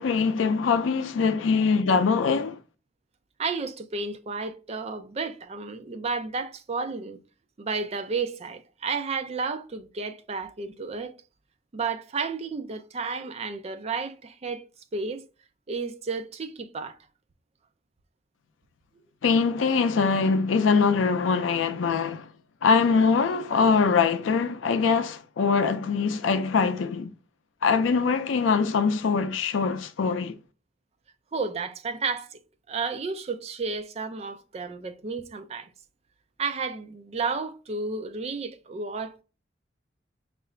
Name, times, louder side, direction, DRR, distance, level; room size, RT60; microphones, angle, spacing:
voice 1, 0.0-2.6 19.2-22.3 22.6-27.1 27.6-30.3, left 5 dB, 90° left, 0.4 m, -23 dB
voice 2, 3.4-7.2 7.6-11.2 11.7-14.7 14.9-15.2 15.7-17.0 31.3-32.4 32.7-35.7 36.4-39.2, right 4 dB, 35° right, 0.4 m, -32 dB
4.6 x 2.5 x 3.1 m
head